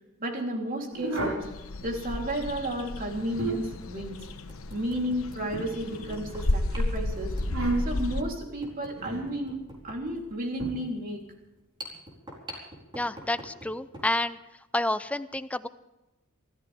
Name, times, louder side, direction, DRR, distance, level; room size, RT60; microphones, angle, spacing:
voice 1, 0.2-1.4 1.8-4.2 4.7-7.3 7.8-11.2, right 1 dB, 45° right, 1 dB, 3.6 m, -32 dB
sound 1, 0.9-1.5 3.0-3.8 5.5-6.4 7.4-8.1 8.9-9.3 10.6-10.7, right 2 dB, 75° right, 5.1 m, -32 dB
sound 2, 1.4-8.2, left 1 dB, 70° left, 1.2 m, -33 dB
sound 3, 1.5-1.6 3.0-3.1 3.6-3.7 4.3-14.1, equal, 25° right, 4.3 m, -47 dB
voice 2, 12.9-14.4 14.7-15.7, left 1 dB, 5° left, 12 dB, 0.6 m, -29 dB
28.0 x 14.0 x 3.6 m, 0.97 s
head